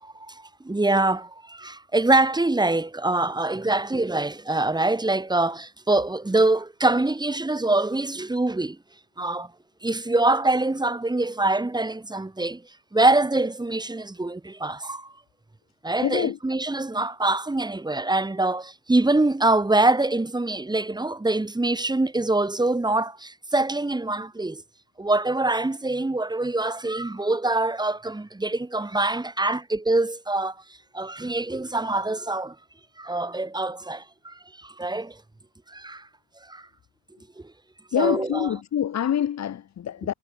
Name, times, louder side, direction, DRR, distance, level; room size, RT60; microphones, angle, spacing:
voice 1, 0.0-8.8 9.2-9.5 9.8-12.6 12.9-15.1 15.8-24.6 25.0-30.6 30.9-32.5 33.0-35.2 35.7-36.1 36.5-36.7 37.9-38.5, right 2 dB, 15° right, 3.4 m, -24 dB
voice 2, 16.0-16.4 37.9-40.1, left 10 dB, 60° left, 2.9 m, -25 dB
cardioid pair, 90°, 30 cm